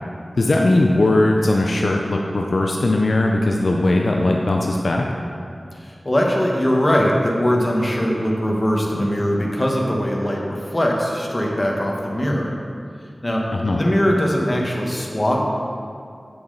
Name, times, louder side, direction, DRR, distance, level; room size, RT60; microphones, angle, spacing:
voice 1, 0.4-5.1 13.5-13.8, left 2 dB, 70° left, 0 dB, 0.6 m, -19 dB
voice 2, 5.7-12.5 13.2-15.5, equal, 25° left, -1 dB, 1.3 m, -21 dB
8.5 x 6.9 x 3.9 m, 2.3 s
wide cardioid pair, 80°, 0 cm